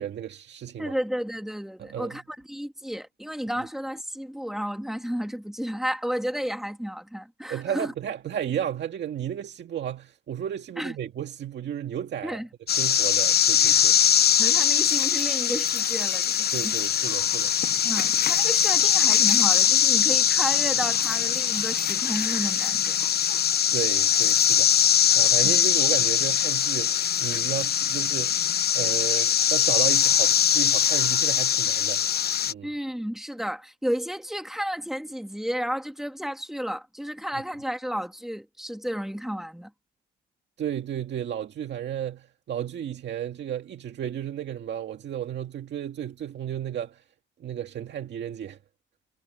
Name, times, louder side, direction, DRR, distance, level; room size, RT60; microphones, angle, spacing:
voice 1, 0.0-1.0 1.8-2.2 7.5-12.4 12.7-14.0 16.5-17.5 23.7-28.4 28.7-32.0 32.5-32.7 40.6-47.0 47.4-48.6, right 10 dB, 60° right, 2.1 m, -33 dB
voice 2, 0.8-7.9 10.8-10.9 12.2-12.5 14.4-16.7 17.8-23.0 25.4-25.6 32.6-39.7, equal, ahead, 2.8 m, -32 dB
sound 1, 12.7-32.5, left 9 dB, 55° left, 1.1 m, -22 dB
cardioid pair, 90°, 20 cm